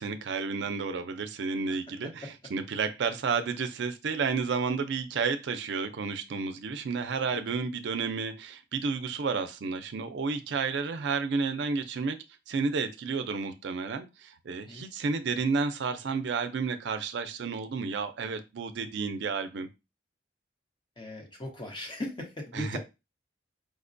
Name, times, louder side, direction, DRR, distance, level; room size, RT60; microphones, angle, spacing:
voice 1, 0.0-12.2 12.5-19.7 22.5-22.8, right 5 dB, 65° right, 9 dB, 0.4 m, -31 dB
voice 2, 21.0-22.8, left 1 dB, 25° left, 1 dB, 0.9 m, -38 dB
5.0 x 2.1 x 2.5 m, 0.25 s
head